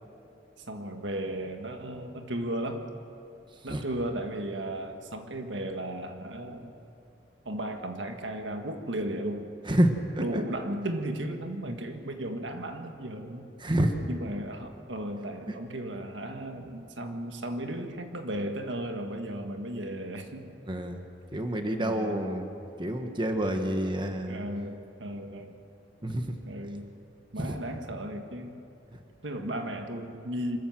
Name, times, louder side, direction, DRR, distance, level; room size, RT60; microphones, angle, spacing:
voice 1, 0.6-2.9 3.6-6.7 7.5-9.5 10.2-13.5 14.1-20.5 21.8-22.2 24.3-25.6 26.5-26.9 27.3-28.6 29.2-30.6, right 1 dB, 85° right, 5 dB, 1.7 m, -35 dB
voice 2, 9.6-10.4 13.6-14.0 15.5-15.6 20.7-21.0 21.3-24.4 26.0-26.3 27.4-27.6, right 1 dB, 25° right, 5 dB, 1.3 m, -28 dB
25.5 x 14.0 x 7.5 m, 2.7 s
head